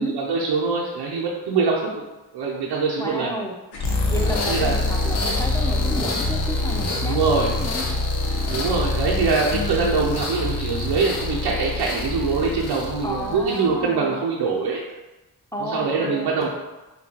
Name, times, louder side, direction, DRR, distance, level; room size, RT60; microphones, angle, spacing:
voice 1, 0.0-2.1 2.3-3.4 4.2-4.8 7.1-7.5 8.5-14.8 15.6-16.5, right 4 dB, 85° right, -3 dB, 0.5 m, -23 dB
voice 2, 3.0-3.5 4.1-7.8 9.5-9.9 13.0-14.2 15.5-16.5, left 1 dB, 10° left, 0 dB, 0.6 m, -32 dB
sound 1, 3.7-13.7, left 2 dB, 85° left, 0.7 m, -25 dB
5.1 x 2.2 x 2.8 m, 1.1 s
cardioid pair, 45°, 40 cm